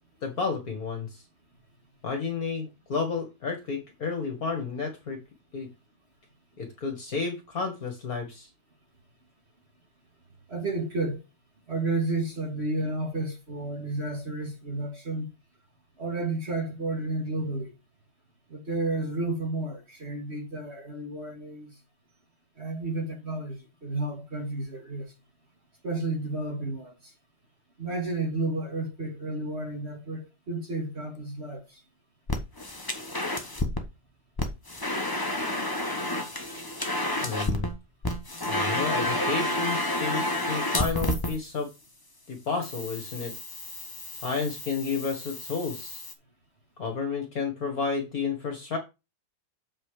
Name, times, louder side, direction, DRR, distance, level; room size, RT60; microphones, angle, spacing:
voice 1, 0.2-1.2 2.0-5.2 5.5-5.7 6.6-8.5 37.2-37.7 38.5-41.7 42.3-43.3 44.2-46.0 46.8-48.8, left 4 dB, 55° left, 2.1 m, -31 dB
voice 2, 10.5-11.2 11.7-15.3 16.0-17.7 18.5-21.7 22.6-25.1 25.8-26.9 27.8-31.6, right 2 dB, 35° right, 2.3 m, -31 dB
sound 1, 32.3-33.8 34.4-37.7 38.0-41.4 42.6-46.1, left 1 dB, 15° left, 1.0 m, -30 dB
7.2 x 5.5 x 4.9 m
omnidirectional pair, 1.9 m